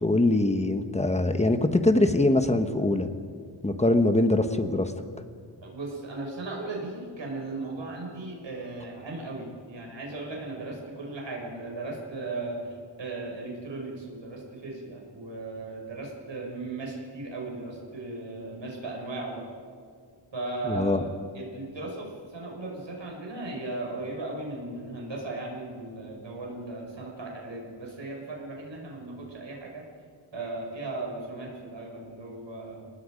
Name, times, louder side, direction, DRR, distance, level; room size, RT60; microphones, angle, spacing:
voice 1, 0.0-3.1 3.6-4.9 20.7-21.0, left 2 dB, 15° left, 8 dB, 1.1 m, -23 dB
voice 2, 5.6-19.5 20.3-21.1 21.3-29.8 30.3-32.9, right 2 dB, 70° right, -1 dB, 5.6 m, -37 dB
29.5 x 19.0 x 5.2 m, 2.1 s
wide cardioid pair, 175°, 45 cm